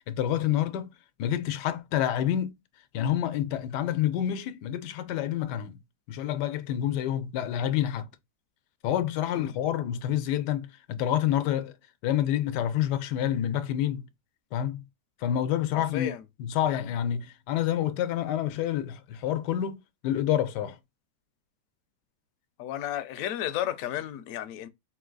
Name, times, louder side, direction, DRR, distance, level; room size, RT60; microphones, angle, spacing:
voice 1, 0.1-0.9 1.2-2.5 2.9-5.8 6.1-8.1 8.8-11.7 12.0-14.1 14.5-14.8 15.2-16.1 16.4-19.8 20.0-20.8, left 11 dB, 85° left, 1.2 m, -28 dB
voice 2, 15.7-16.2 22.6-24.7, left 12 dB, 70° left, 0.8 m, -33 dB
3.9 x 2.8 x 3.8 m
omnidirectional pair, 1.8 m